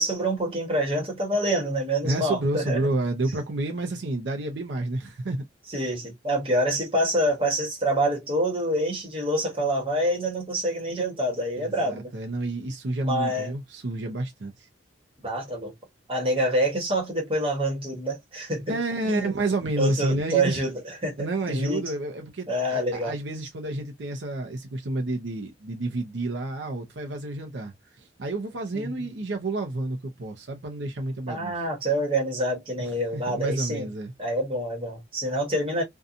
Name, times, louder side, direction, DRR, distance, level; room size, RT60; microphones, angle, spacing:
voice 1, 0.0-2.8 5.7-12.1 13.0-13.5 15.2-15.7 16.1-18.8 19.1-19.3 19.8-21.8 22.5-23.1 28.7-29.0 31.3-33.9 34.2-35.8, right 1 dB, 30° right, 1.1 m, -26 dB
voice 2, 2.0-5.5 11.6-14.7 18.7-20.6 21.2-31.5 33.1-34.1, right 2 dB, 75° right, 0.6 m, -30 dB
2.7 x 2.3 x 2.5 m
head